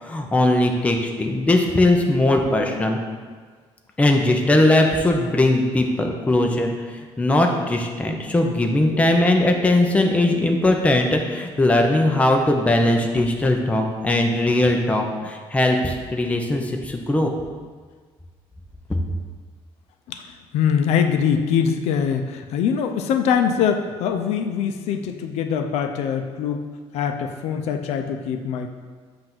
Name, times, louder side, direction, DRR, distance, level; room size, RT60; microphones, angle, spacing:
voice 1, 0.0-3.0 4.0-17.3, left 1 dB, 10° left, 2 dB, 0.6 m, -19 dB
voice 2, 20.1-26.6 26.9-28.7, left 7 dB, 80° left, 7 dB, 0.5 m, -23 dB
7.8 x 2.6 x 5.9 m, 1.5 s
cardioid pair, 140°, 11 cm